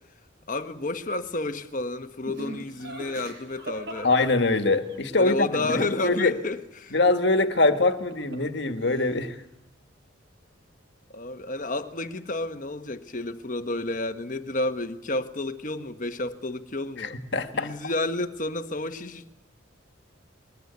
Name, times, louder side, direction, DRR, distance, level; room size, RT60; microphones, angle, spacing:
voice 1, 0.5-4.1 5.2-7.0 11.1-17.2 17.5-19.3, left 2 dB, 40° left, 1.3 m, -31 dB
Laughter, 2.3-5.0 7.7-8.6 8.8-9.4, right 1 dB, 55° right, 6.8 m, -40 dB
voice 2, 4.0-6.3 6.9-9.4 17.0-17.7, left 3 dB, 60° left, 1.8 m, -23 dB
22.0 x 20.5 x 9.5 m
head